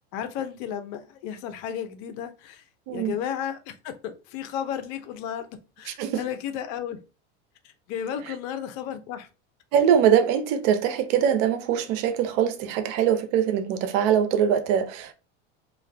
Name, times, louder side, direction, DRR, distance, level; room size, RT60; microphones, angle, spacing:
voice 1, 0.1-5.5 5.8-7.0 7.6-9.3, left 9 dB, 55° left, 0.7 m, -33 dB
voice 2, 9.7-15.1, right 9 dB, 60° right, 0.7 m, -22 dB
2.5 x 2.3 x 3.3 m
hypercardioid pair, 95°, 34 cm